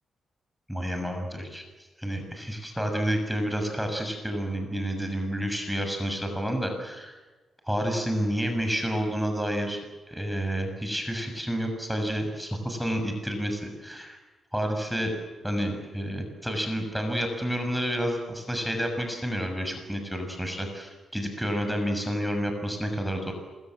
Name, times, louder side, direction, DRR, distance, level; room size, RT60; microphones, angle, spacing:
voice 1, 0.7-1.6 2.0-7.2 7.7-9.8 10.1-14.2 14.5-15.1 15.4-23.3, equal, ahead, 4 dB, 6.6 m, -29 dB
28.0 x 24.0 x 7.7 m, 1.2 s
cardioid pair, 100°, 0 cm